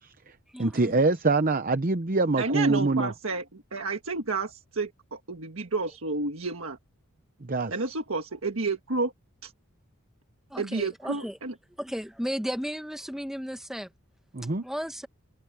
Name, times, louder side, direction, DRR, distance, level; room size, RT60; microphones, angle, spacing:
voice 1, 0.0-3.1 7.4-7.7 14.3-14.6, right 3 dB, 40° right, 0.8 m, -25 dB
voice 2, 0.5-0.9 10.5-11.4 11.8-13.9 14.6-15.1, equal, ahead, 1.5 m, -34 dB
voice 3, 2.4-6.8 7.7-9.1 9.4-9.5 10.6-11.5, right 3 dB, 65° right, 1.6 m, -31 dB
head